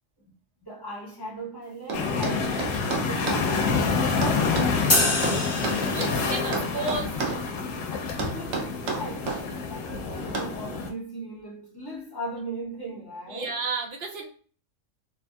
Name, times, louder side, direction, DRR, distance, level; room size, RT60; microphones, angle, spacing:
voice 1, 0.6-3.9 4.2-5.0 8.2-13.6, right 1 dB, 20° left, 0.9 m, -38 dB
sound 1, 1.9-10.9, left 4 dB, 80° left, 0.9 m, -27 dB
sound 2, 1.9-3.5 4.2-6.2 6.5-7.5 8.2-9.4 10.3-10.6, right 4 dB, 80° right, 1.0 m, -31 dB
sound 3, 4.9-6.5, left 2 dB, 40° left, 0.4 m, -26 dB
voice 2, 5.9-7.2 13.3-14.3, right 3 dB, 55° right, 0.7 m, -32 dB
3.1 x 2.5 x 2.3 m
omnidirectional pair, 1.3 m